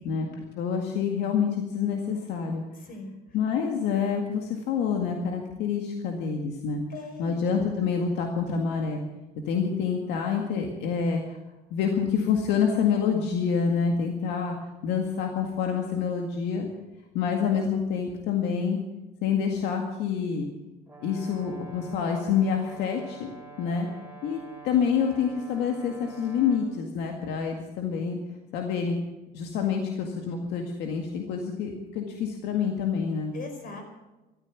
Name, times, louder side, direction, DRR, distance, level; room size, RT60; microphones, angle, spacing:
voice 1, 0.0-2.6 3.3-6.8 7.2-9.0 9.5-11.4 11.7-14.6 14.8-16.7 17.1-18.8 19.2-20.5 21.0-23.3 23.6-23.9 24.2-28.2 28.5-29.0 29.3-33.3, left 6 dB, 90° left, 3 dB, 1.9 m, -27 dB
voice 2, 2.8-3.1 6.9-7.4 33.3-33.8, left 3 dB, 60° left, 5 dB, 4.8 m, -40 dB
Brass instrument, 20.9-26.7, right 4 dB, 10° right, 4.9 m, -47 dB
14.0 x 13.0 x 7.4 m, 1.1 s
cardioid pair, 110°, 17 cm